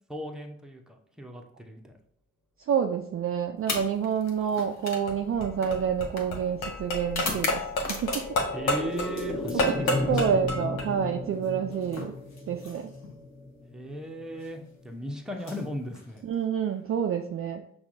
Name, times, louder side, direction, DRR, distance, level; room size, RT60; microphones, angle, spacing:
voice 1, 0.1-1.9 8.5-10.4 13.7-16.2, equal, ahead, 2 dB, 0.8 m, -37 dB
voice 2, 2.7-8.1 9.5-12.1 12.5-12.9 16.2-17.6, right 7 dB, 40° right, 4 dB, 0.4 m, -28 dB
sound 1, 3.6-8.5 8.9-10.1 11.3-13.2 14.2-14.5 15.3-16.5, left 3 dB, 45° left, 1.1 m, -39 dB
sound 2, 5.1-10.9, left 1 dB, 75° left, 0.9 m, -30 dB
sound 3, 5.2-14.8 15.1-15.2, left 2 dB, 15° left, 1.3 m, -36 dB
5.7 x 2.4 x 2.6 m, 0.65 s
hypercardioid pair, 45°, 37 cm